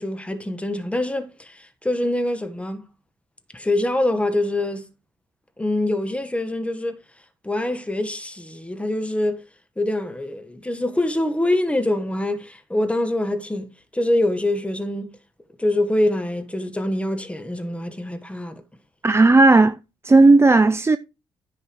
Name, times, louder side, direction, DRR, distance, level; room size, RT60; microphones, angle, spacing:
voice 1, 0.0-2.8 3.5-4.9 5.6-7.0 7.4-9.4 9.8-15.1 15.6-18.6, left 1 dB, 10° left, 1.7 m, -24 dB
voice 2, 19.0-19.8 20.0-21.0, right 3 dB, 25° right, 0.6 m, -13 dB
10.0 x 5.6 x 4.8 m
hypercardioid pair, 55°, 11 cm